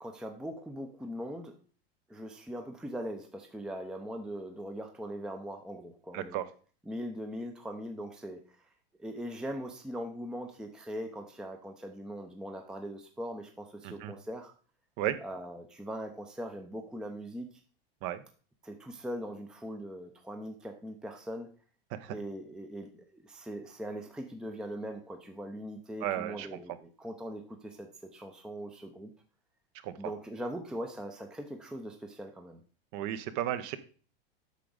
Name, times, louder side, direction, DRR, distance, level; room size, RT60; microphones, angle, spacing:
voice 1, 0.0-1.5 2.1-6.4 6.9-8.6 9.0-14.5 15.2-17.5 18.6-21.5 22.1-29.1 30.0-32.6, equal, ahead, 4 dB, 0.6 m, -41 dB
voice 2, 6.1-6.4 13.8-14.1 15.0-15.2 18.0-18.2 21.9-22.1 26.0-26.6 29.8-29.9 32.9-33.8, right 12 dB, 45° right, 13 dB, 0.8 m, -34 dB
8.4 x 5.9 x 3.9 m, 0.39 s
supercardioid pair, 135°, 30 cm